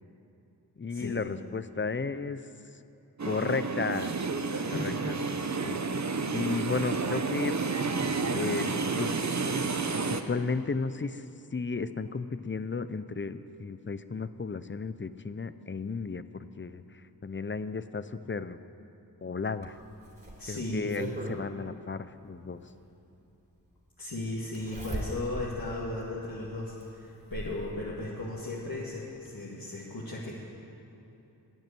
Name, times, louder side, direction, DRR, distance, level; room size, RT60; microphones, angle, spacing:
voice 1, 0.8-2.5 3.2-4.1 4.8-5.2 5.5-5.8 6.3-7.6 8.3-9.2 10.1-11.3 11.5-18.6 19.2-19.8 20.5-22.6, left 4 dB, 30° left, 13 dB, 0.6 m, -34 dB
sound 1, 3.2-10.2, right 4 dB, 45° right, 0.9 m, -30 dB
voice 2, 4.5-5.0 6.5-6.6 20.4-20.9 24.0-30.3, left 2 dB, 60° left, -6 dB, 2.0 m, -36 dB
Zipper (clothing), 19.6-21.4 22.8-22.9 24.5-25.5 26.0-26.1 26.8-27.6 28.8-28.9 29.2-29.3, right 1 dB, 25° right, 3.4 m, -38 dB
12.0 x 9.7 x 9.1 m, 2.9 s
cardioid pair, 50°, 40 cm